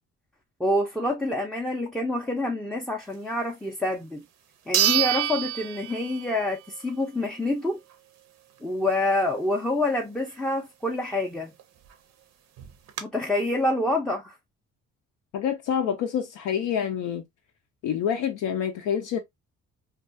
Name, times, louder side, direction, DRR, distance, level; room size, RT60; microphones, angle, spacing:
voice 1, 0.6-4.2 4.7-7.8 8.6-11.5 13.0-14.3, left 1 dB, 5° left, 0.4 m, -27 dB
sound 1, 3.9-4.0 4.7-6.5 6.9-7.0 11.6-11.7 11.9-12.0 12.6-13.0, right 11 dB, 65° right, 0.6 m, -26 dB
voice 2, 15.3-17.2 17.8-19.2, left 8 dB, 80° left, 0.5 m, -27 dB
2.3 x 2.3 x 2.4 m
cardioid pair, 90°, 30 cm